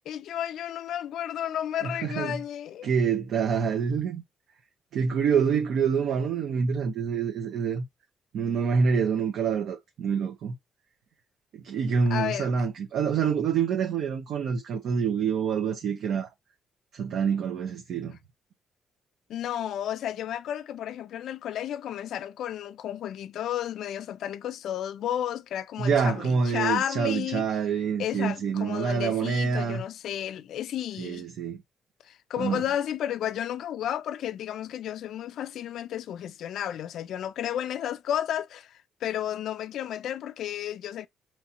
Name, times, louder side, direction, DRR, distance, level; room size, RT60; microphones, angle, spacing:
voice 1, 0.0-2.9 12.1-12.5 19.3-27.5 28.0-31.2 32.1-41.1, left 10 dB, 75° left, 0.4 m, -32 dB
voice 2, 1.8-2.4 2.8-4.2 4.9-7.8 8.3-10.5 11.6-16.3 16.9-18.2 25.8-29.8 31.0-31.6 32.4-32.6, right 6 dB, 75° right, 0.8 m, -26 dB
5.5 x 3.1 x 2.9 m
cardioid pair, 90°, 0 cm